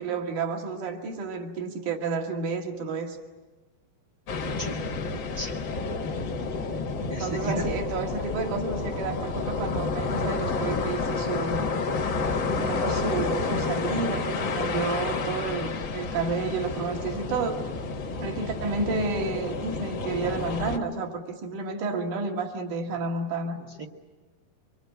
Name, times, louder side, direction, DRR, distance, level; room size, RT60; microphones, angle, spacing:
voice 1, 0.0-3.2 7.2-11.7 12.6-17.7 18.2-23.6, right 4 dB, 55° right, 3 dB, 3.5 m, -31 dB
sound 1, 4.3-20.8, left 4 dB, 50° left, 1.4 m, -30 dB
voice 2, 4.4-4.8 5.4-5.5 7.1-7.7 23.8-23.9, right 1 dB, 35° right, 1 dB, 1.8 m, -34 dB
25.5 x 23.5 x 9.5 m, 1.3 s
omnidirectional pair, 4.5 m